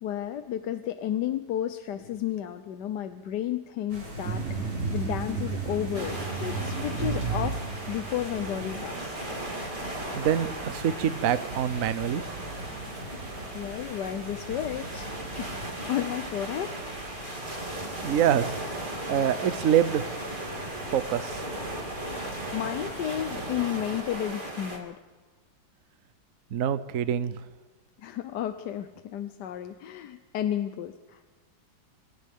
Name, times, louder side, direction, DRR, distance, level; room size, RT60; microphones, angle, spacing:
voice 1, 0.0-9.2 13.5-15.6 15.9-16.8 22.5-25.0 28.0-31.2, left 11 dB, 65° left, 9 dB, 1.3 m, -32 dB
sound 1, 3.9-23.5, right 1 dB, 80° right, 5.0 m, -42 dB
sound 2, 4.2-8.8, right 5 dB, 40° right, 1.5 m, -33 dB
sound 3, 5.9-24.8, right 1 dB, 25° right, 3.2 m, -37 dB
voice 2, 10.2-12.2 18.0-18.6 19.1-20.0 20.9-21.4 26.5-27.3, right 9 dB, 55° right, 12 dB, 1.0 m, -25 dB
27.0 x 27.0 x 3.7 m, 1.3 s
omnidirectional pair, 2.1 m